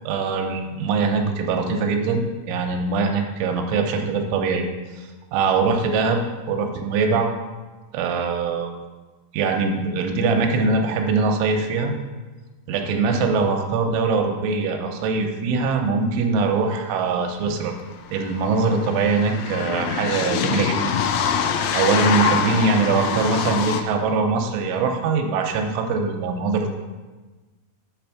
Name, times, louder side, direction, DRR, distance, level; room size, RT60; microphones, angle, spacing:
voice 1, 0.1-2.2 2.5-4.6 5.0-6.2 6.5-7.3 7.9-8.7 9.3-12.0 12.7-17.7 18.1-20.9 21.7-26.8, right 4 dB, 90° right, 3 dB, 3.1 m, -22 dB
sound 1, 17.3-17.4 17.6-23.8, left 7 dB, 85° left, 2.9 m, -25 dB
8.4 x 3.4 x 5.8 m, 1.2 s
omnidirectional pair, 5.5 m